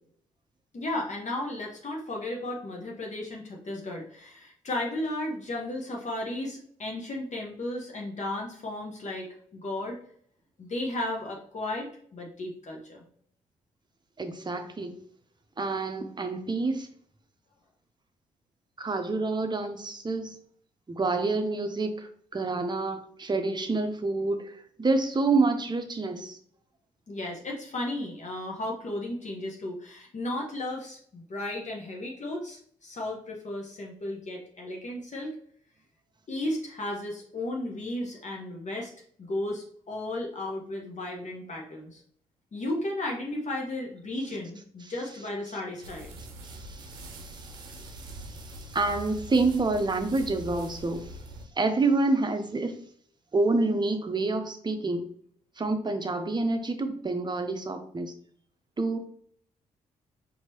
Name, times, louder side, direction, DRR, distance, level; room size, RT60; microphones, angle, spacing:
voice 1, 0.7-10.0 10.6-13.0 27.1-35.3 36.3-38.9 39.2-42.0 42.5-46.1, left 1 dB, 40° left, 0 dB, 1.1 m, -34 dB
voice 2, 14.2-14.9 15.6-16.9 18.8-20.4 20.9-26.4 46.4-51.2 51.6-52.8 53.3-55.0 55.6-58.1 58.8-59.0, right 3 dB, 25° right, 7 dB, 0.8 m, -28 dB
sound 1, 45.8-51.4, right 1 dB, 85° right, 0.6 m, -43 dB
4.5 x 2.7 x 2.9 m, 0.62 s
hypercardioid pair, 40°, 18 cm